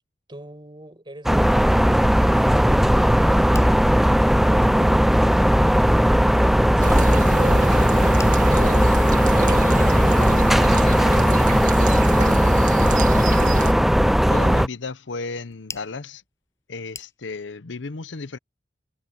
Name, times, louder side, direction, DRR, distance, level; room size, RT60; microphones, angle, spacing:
voice 1, 0.3-3.3, right 1 dB, 25° right, 5.8 m, -44 dB
sound 1, 1.3-14.7, equal, ahead, 0.4 m, -17 dB
sound 2, 3.1-17.6, left 4 dB, 15° left, 7.5 m, -49 dB
sound 3, 6.8-13.7, right 3 dB, 45° right, 2.1 m, -29 dB
voice 2, 14.3-16.2 16.7-18.4, left 3 dB, 75° left, 0.8 m, -33 dB
head